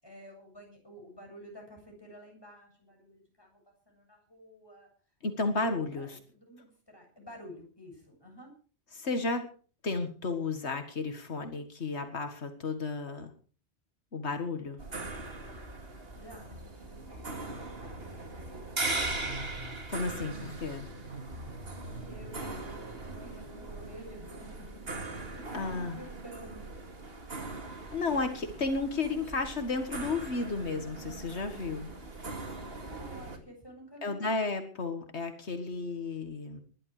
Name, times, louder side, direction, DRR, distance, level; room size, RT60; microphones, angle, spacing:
voice 1, 0.0-4.9 5.6-8.5 16.1-18.6 20.4-20.9 21.8-26.6 32.8-34.4, equal, 20° left, 1 dB, 7.5 m, -51 dB
voice 2, 5.2-6.2 8.9-9.5 9.8-13.3 14.1-14.8 19.9-20.9 25.5-26.0 27.9-31.9 34.0-36.6, left 3 dB, 85° left, 7 dB, 2.0 m, -33 dB
sound 1, 14.8-33.4, right 2 dB, 65° right, 2.6 m, -40 dB
sound 2, 16.3-23.2, equal, 35° right, 2.0 m, -49 dB
21.0 x 11.5 x 4.9 m, 0.40 s
omnidirectional pair, 1.1 m